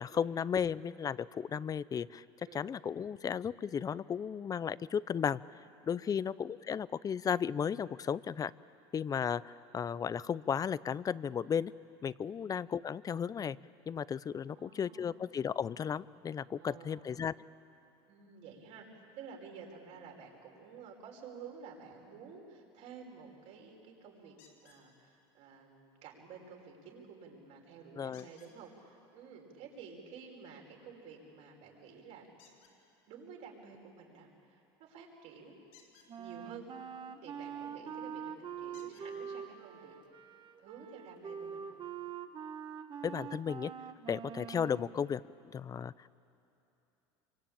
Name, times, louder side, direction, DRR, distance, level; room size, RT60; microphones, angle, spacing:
voice 1, 0.0-2.2 2.5-5.4 5.9-8.5 8.9-11.7 12.0-13.6 13.9-17.3 28.0-28.3 43.0-43.7 44.1-46.1, left 7 dB, 30° left, 19 dB, 0.5 m, -34 dB
voice 2, 6.0-6.4 12.3-12.5 14.5-15.2 16.5-17.1 18.1-24.4 24.6-32.3 33.1-35.6 36.2-36.7 37.2-40.0 40.6-41.8, right 6 dB, 65° right, 0 dB, 5.5 m, -52 dB
sound 1, 24.4-24.8 28.1-28.6 32.4-32.7 35.6-36.1 37.8-37.9 38.7-39.1 40.1-40.2 40.7-40.8, left 7 dB, 75° left, 5.4 m, -61 dB
Wind instrument woodwind instrument, 36.1-45.0, right 7 dB, 40° right, 1.5 m, -44 dB
26.5 x 24.0 x 8.9 m, 2.8 s
supercardioid pair, 100°, 13 cm